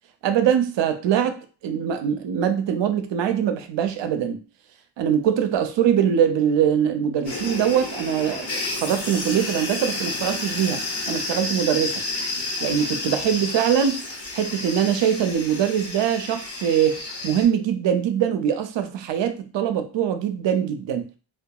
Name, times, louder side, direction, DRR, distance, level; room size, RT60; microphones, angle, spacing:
voice 1, 0.2-4.4 5.0-12.0 12.6-21.1, right 9 dB, 80° right, 0.5 m, -23 dB
sound 1, 7.2-17.4, left 2 dB, 65° left, 1.2 m, -31 dB
2.7 x 2.3 x 2.2 m
cardioid pair, 85°, 43 cm